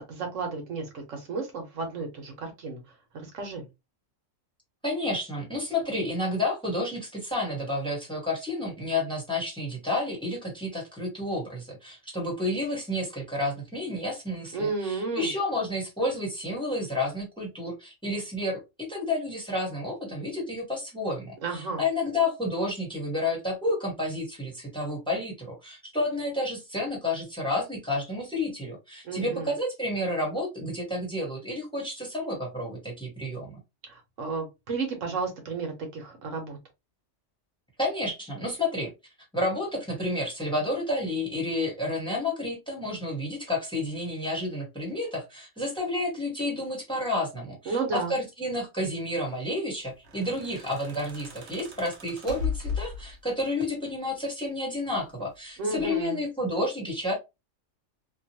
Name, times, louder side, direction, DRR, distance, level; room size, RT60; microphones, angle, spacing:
voice 1, 0.0-2.8 3.1-3.6 14.5-15.3 21.4-21.8 29.0-29.5 33.9-36.6 47.7-48.1 55.6-56.2, right 4 dB, 80° right, 1.3 m, -32 dB
voice 2, 4.8-33.6 37.8-38.9 39.3-57.1, left 1 dB, 5° left, 1.1 m, -30 dB
sound 1, 49.9-53.4 54.6-55.3 55.8-56.1, left 5 dB, 65° right, 1.0 m, -36 dB
2.9 x 2.3 x 2.8 m
omnidirectional pair, 1.3 m